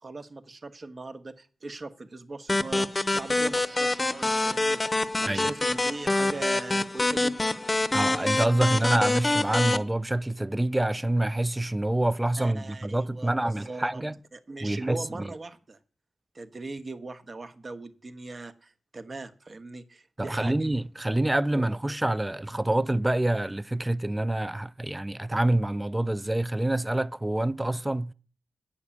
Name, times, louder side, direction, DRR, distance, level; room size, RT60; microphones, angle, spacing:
voice 1, 0.0-2.9 3.1-7.6 12.4-14.0 14.3-15.8 16.3-20.5 21.5-21.7, right 3 dB, 45° right, 1.1 m, -40 dB
sound 1, 2.5-9.8, left 2 dB, 25° left, 0.8 m, -26 dB
voice 2, 7.9-14.2 14.6-15.3 20.2-28.1, right 1 dB, 15° right, 0.4 m, -26 dB
8.8 x 6.4 x 8.4 m
cardioid pair, 80°, 0 cm